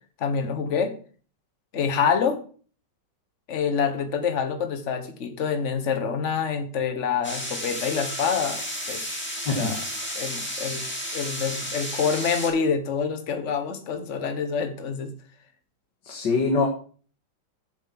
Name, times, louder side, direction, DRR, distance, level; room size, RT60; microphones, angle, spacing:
voice 1, 0.2-0.9 1.7-2.4 3.5-8.6 8.9-9.0 9.5-9.8 10.1-10.8 11.1-15.1, left 6 dB, 45° left, 8 dB, 1.5 m, -26 dB
sound 1, 7.2-12.5, equal, 5° left, 2.7 m, -32 dB
voice 2, 16.0-16.7, left 3 dB, 80° left, -1 dB, 2.4 m, -23 dB
8.5 x 7.2 x 5.9 m, 0.42 s
omnidirectional pair, 1.9 m